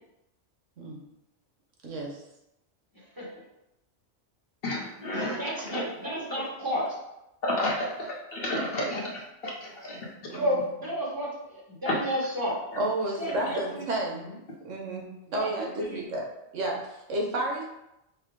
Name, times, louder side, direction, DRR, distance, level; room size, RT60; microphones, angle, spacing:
voice 1, 1.8-2.2 10.3-10.5 12.8-14.2 14.6-15.0 15.3-16.2 16.5-17.7, right 1 dB, 90° right, 0 dB, 1.2 m, -31 dB
voice 2, 4.6-5.4 5.7-5.8 7.4-7.9 8.3-9.1 9.4-9.5 9.8-10.0 11.9-12.0, left 1 dB, 55° left, -2 dB, 1.0 m, -29 dB
voice 3, 5.3-6.9 10.3-12.6 13.0-14.4 15.4-16.1, equal, 20° right, -6 dB, 1.2 m, -32 dB
5.4 x 2.1 x 3.6 m, 0.89 s
omnidirectional pair, 1.2 m